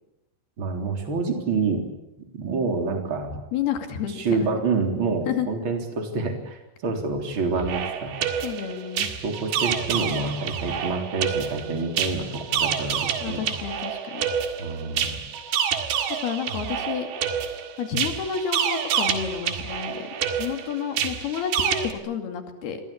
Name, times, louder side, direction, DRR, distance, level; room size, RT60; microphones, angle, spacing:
voice 1, 0.6-1.8 2.3-3.3 4.2-8.2 9.2-13.4 14.6-15.1, right 4 dB, 30° right, 4 dB, 4.1 m, -27 dB
voice 2, 3.5-4.5 5.3-5.5 8.4-9.1 13.2-14.2 16.2-17.1 17.8-22.8, left 8 dB, 65° left, 6 dB, 4.3 m, -30 dB
sound 1, 7.5-21.9, right 8 dB, 70° right, 3.8 m, -28 dB
27.5 x 22.5 x 8.6 m, 0.91 s
omnidirectional pair, 4.9 m